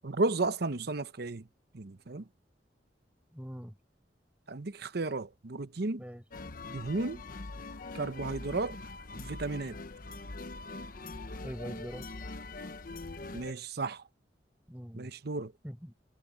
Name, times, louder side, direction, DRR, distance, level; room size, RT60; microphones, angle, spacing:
voice 1, 0.0-1.5 1.7-2.3 4.5-6.0 6.7-7.2 7.9-8.8 9.2-9.8 13.3-14.0 14.9-15.5, right 3 dB, 65° right, 0.9 m, -33 dB
voice 2, 3.3-3.7 6.0-6.2 11.4-12.1 14.7-15.1 15.6-15.9, equal, 10° right, 5.9 m, -42 dB
sound 1, 6.3-13.5, left 2 dB, 50° left, 1.0 m, -43 dB
head